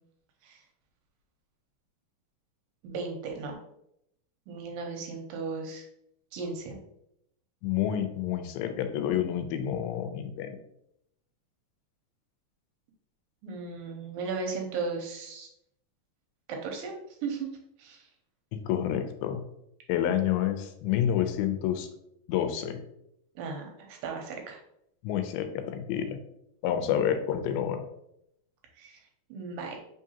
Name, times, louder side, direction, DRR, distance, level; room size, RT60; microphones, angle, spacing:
voice 1, 2.8-3.6 4.5-5.8 6.3-6.8 13.4-15.5 16.6-16.9 17.2-17.5 17.8-18.1 23.4-24.6 28.8-29.0 29.3-29.8, right 4 dB, 80° right, 2 dB, 2.3 m, -36 dB
voice 2, 7.6-10.6 18.5-19.4 19.9-21.9 22.3-22.8 25.0-26.2 26.6-27.8, left 10 dB, 85° left, 8 dB, 2.4 m, -29 dB
5.1 x 3.7 x 2.8 m, 0.77 s
omnidirectional pair, 4.3 m